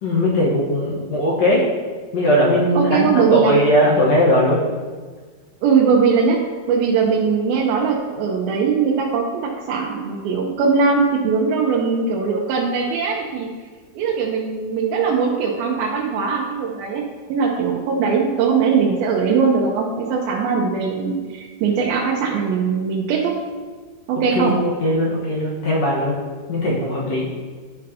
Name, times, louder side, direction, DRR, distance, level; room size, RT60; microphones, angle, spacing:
voice 1, 0.0-1.7 2.1-4.6 24.4-24.5 24.8-26.1 26.5-27.3, equal, 60° left, -5 dB, 2.0 m, -19 dB
voice 2, 2.7-3.5 5.6-6.4 6.7-13.5 14.0-17.0 17.3-23.3 24.1-24.6, right 5 dB, 90° right, -2 dB, 2.6 m, -20 dB
11.5 x 5.3 x 2.8 m, 1.5 s
omnidirectional pair, 4.1 m